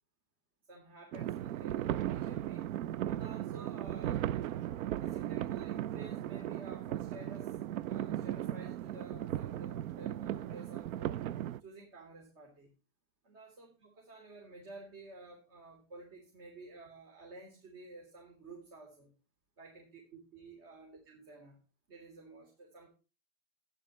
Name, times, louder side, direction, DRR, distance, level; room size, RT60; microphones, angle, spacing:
voice 1, 0.7-2.7 3.1-4.3 5.0-7.6 7.8-11.2 11.6-12.7 13.2-19.1 19.6-21.6 21.9-22.9, right 2 dB, 55° right, 1 dB, 3.6 m, -52 dB
sound 1, 1.1-11.6, right 12 dB, 90° right, 0.5 m, -37 dB
12.0 x 10.0 x 3.1 m, 0.32 s
supercardioid pair, 125°, 40 cm